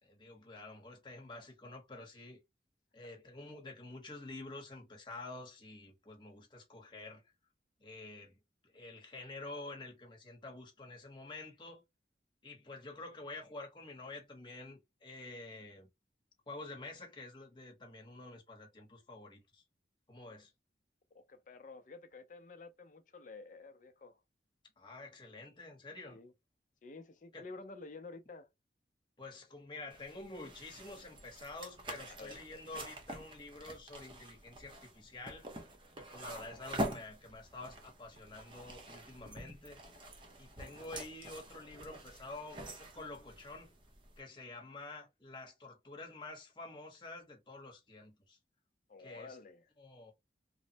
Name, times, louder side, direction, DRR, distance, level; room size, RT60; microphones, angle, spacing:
voice 1, 0.0-2.4 2.9-7.2 7.8-11.8 12.4-15.9 16.5-19.6 20.1-20.5 24.8-26.2 27.3-27.5 29.2-35.5 36.0-39.8 40.4-43.7 44.2-48.4 49.0-49.4 49.8-50.1, left 2 dB, 25° left, 0.9 m, -49 dB
voice 2, 21.1-24.2 26.1-26.3 26.8-28.5 32.1-32.4 36.3-36.6 48.9-49.7, left 3 dB, 45° left, 0.5 m, -51 dB
sound 1, 29.9-44.2, right 1 dB, 30° right, 0.6 m, -46 dB
3.1 x 2.0 x 2.7 m
head